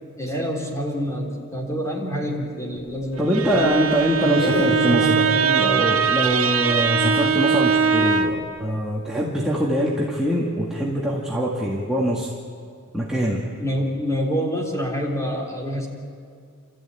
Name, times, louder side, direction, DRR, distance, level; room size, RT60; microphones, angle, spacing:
voice 1, 0.2-3.7 4.2-5.6 13.6-15.9, equal, 15° left, 1 dB, 3.6 m, -26 dB
voice 2, 3.2-12.3 12.9-13.5, right 1 dB, 5° right, -5 dB, 1.9 m, -23 dB
Bowed string instrument, 3.2-8.5, right 6 dB, 80° right, 1.5 m, -21 dB
30.0 x 14.0 x 9.1 m, 2.2 s
head